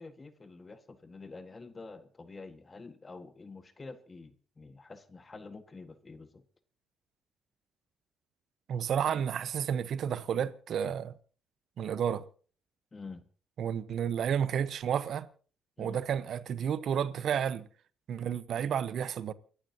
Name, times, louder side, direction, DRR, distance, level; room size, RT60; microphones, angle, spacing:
voice 1, 0.0-6.4 12.9-13.2 15.8-16.0, left 3 dB, 30° left, 1.7 m, -48 dB
voice 2, 8.7-11.1 11.8-12.2 13.6-15.3 15.8-17.6 18.1-19.3, right 8 dB, 65° right, 1.1 m, -31 dB
29.0 x 11.5 x 2.9 m
cardioid pair, 90°, 0 cm